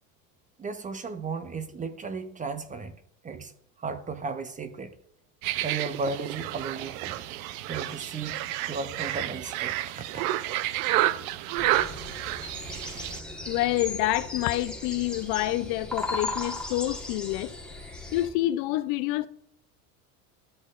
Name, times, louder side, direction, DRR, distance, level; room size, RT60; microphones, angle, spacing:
voice 1, 0.6-3.0 3.2-3.5 3.8-4.9 5.6-7.2 7.7-9.8, right 4 dB, 20° right, 0.5 m, -35 dB
sound 1, 5.4-13.2, right 14 dB, 65° right, 0.6 m, -30 dB
sound 2, 11.5-18.3, left 2 dB, ahead, 1.2 m, -37 dB
voice 2, 13.5-17.5 18.1-19.3, left 16 dB, 60° left, 0.6 m, -27 dB
12.0 x 6.2 x 2.4 m
supercardioid pair, 100°, 44 cm